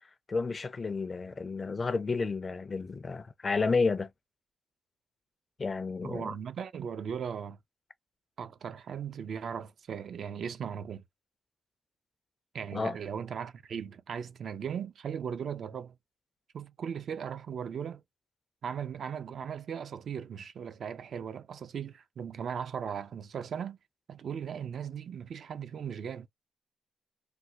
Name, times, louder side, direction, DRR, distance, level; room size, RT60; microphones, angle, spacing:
voice 1, 0.3-4.1 5.6-6.3 12.7-13.0, left 4 dB, 30° left, 0.4 m, -31 dB
voice 2, 6.0-7.6 8.4-11.0 12.5-16.0 16.5-18.0 18.6-23.8 24.1-26.3, right 7 dB, 60° right, 0.4 m, -38 dB
3.2 x 2.3 x 2.7 m
wide cardioid pair, 140°, 0 cm